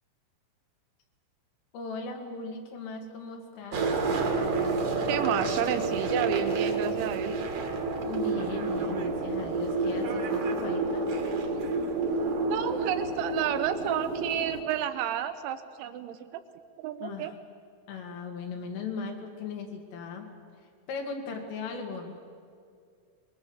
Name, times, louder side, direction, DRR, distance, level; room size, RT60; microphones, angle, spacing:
voice 1, 1.7-3.9 8.1-11.1 17.0-17.3 17.9-20.3 20.9-22.2, left 4 dB, 80° left, 2 dB, 4.9 m, -38 dB
sound 1, 3.7-14.6, right 3 dB, 55° right, 2.2 m, -29 dB
voice 2, 5.1-7.4 12.5-16.4 16.8-17.3, right 10 dB, 80° right, 10 dB, 2.9 m, -31 dB
24.5 x 22.0 x 7.2 m, 2.3 s
omnidirectional pair, 5.8 m